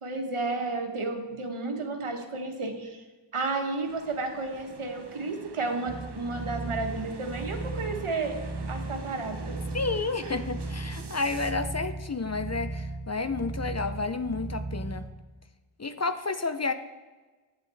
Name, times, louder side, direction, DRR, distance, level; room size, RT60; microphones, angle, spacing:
voice 1, 0.0-3.0 3.3-8.3 8.7-9.6 10.2-10.3, right 3 dB, 80° right, 4 dB, 1.3 m, -32 dB
sound 1, 3.8-11.5, right 4 dB, 55° right, 1.0 m, -45 dB
sound 2, 5.9-15.1, right 2 dB, ahead, 1.4 m, -36 dB
voice 2, 9.7-15.1 15.8-16.7, left 3 dB, 35° left, 10 dB, 0.6 m, -31 dB
10.5 x 9.0 x 3.5 m, 1.3 s
wide cardioid pair, 40°, 50 cm